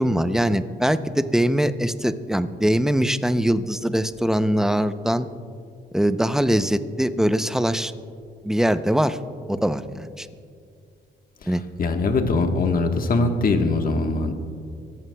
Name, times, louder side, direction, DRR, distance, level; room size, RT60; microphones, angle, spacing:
voice 1, 0.0-5.3 5.9-7.9 8.4-9.2 9.5-10.3 11.5-11.6, equal, ahead, 11 dB, 0.6 m, -22 dB
voice 2, 11.4-14.3, left 3 dB, 45° left, 5 dB, 1.3 m, -22 dB
26.5 x 14.5 x 2.3 m, 2.3 s
cardioid pair, 90°, 20 cm